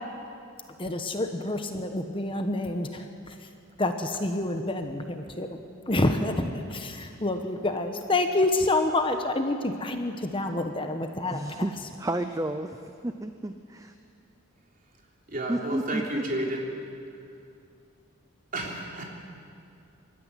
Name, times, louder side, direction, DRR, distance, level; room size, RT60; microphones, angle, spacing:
voice 1, 0.8-3.3 3.8-11.4, left 2 dB, 25° left, 6 dB, 1.1 m, -28 dB
voice 2, 11.3-13.9 15.5-16.0 16.4-16.5, right 1 dB, 15° right, 8 dB, 0.6 m, -32 dB
voice 3, 15.3-16.7 18.5-19.0, right 1 dB, 40° right, -1 dB, 3.5 m, -32 dB
25.0 x 13.0 x 9.8 m, 2.5 s
head